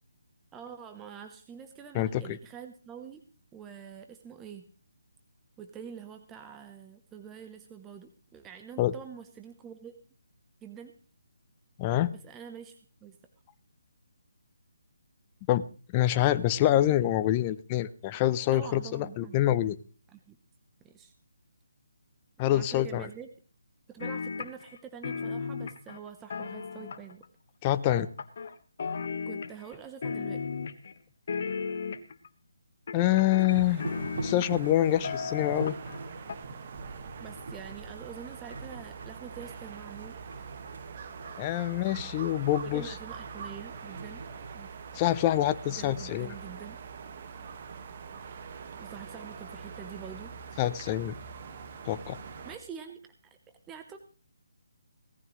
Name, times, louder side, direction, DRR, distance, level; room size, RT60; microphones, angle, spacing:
voice 1, 0.5-3.2 3.5-4.7 5.6-9.9 10.6-10.9 12.1-12.8 13.0-13.2 18.5-19.4 20.1-20.4 20.8-21.1 22.4-23.3 23.9-27.2 29.3-30.5 37.2-40.2 42.6-44.2 44.5-44.7 45.6-46.8 48.8-50.6 52.4-53.4 53.7-54.0, right 7 dB, 10° right, 6 dB, 0.9 m, -46 dB
voice 2, 1.9-2.4 8.8-8.9 11.8-12.1 15.5-15.6 15.9-19.8 22.4-23.1 27.6-28.1 32.9-33.8 34.2-35.8 41.4-42.9 44.9-46.3 50.6-51.1 51.9-52.2, left 13 dB, 20° left, 13 dB, 0.6 m, -26 dB
sound 1, 24.0-24.8 25.0-27.3 27.9-28.5 28.8-29.8 30.0-30.9 31.3-32.3 32.9-34.7 35.0-36.0 36.3-36.4, left 5 dB, 50° left, 1.3 m, -35 dB
sound 2, 33.2-45.1 45.3-46.8, right 3 dB, 65° right, 4.0 m, -44 dB
sound 3, 33.5-52.6, right 5 dB, 40° right, 1.6 m, -43 dB
18.0 x 14.0 x 3.1 m, 0.38 s
hypercardioid pair, 160°, 0 cm